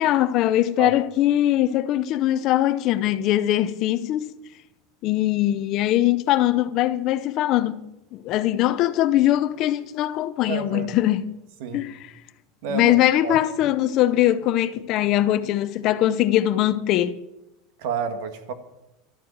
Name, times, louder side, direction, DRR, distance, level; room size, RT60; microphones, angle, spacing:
voice 1, 0.0-4.3 5.0-7.8 8.1-11.3 11.7-12.0 12.7-17.2, left 13 dB, 40° left, 0.6 m, -21 dB
voice 2, 10.5-10.9 11.6-11.8 12.6-13.0 13.2-13.4 17.8-18.5, right 6 dB, 65° right, 1.9 m, -29 dB
12.5 x 9.4 x 8.6 m
supercardioid pair, 160°, 0 cm